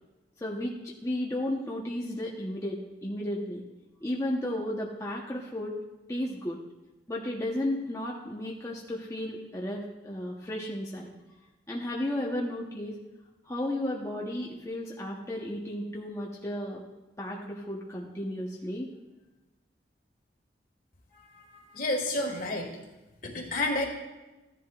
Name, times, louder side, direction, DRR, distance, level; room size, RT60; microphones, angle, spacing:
voice 1, 0.4-0.7 1.0-3.6 4.0-5.8 6.1-6.6 7.1-11.1 11.7-13.0 13.4-16.8 17.2-18.9, left 1 dB, 15° left, -3 dB, 1.0 m, -33 dB
voice 2, 21.5-22.7 23.2-23.9, left 2 dB, 50° left, 2 dB, 1.8 m, -30 dB
14.0 x 10.5 x 2.4 m, 1.1 s
head